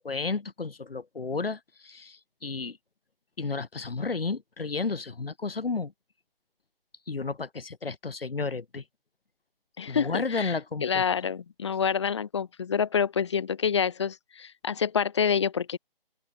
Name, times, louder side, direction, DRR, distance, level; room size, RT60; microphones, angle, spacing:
voice 1, 0.0-2.8 3.4-5.9 7.1-8.8 9.9-11.0, left 4 dB, 75° left, 6.2 m, -32 dB
voice 2, 9.8-10.5 10.8-15.8, left 7 dB, 30° left, 2.4 m, -27 dB
open air
hypercardioid pair, 175°, 29 cm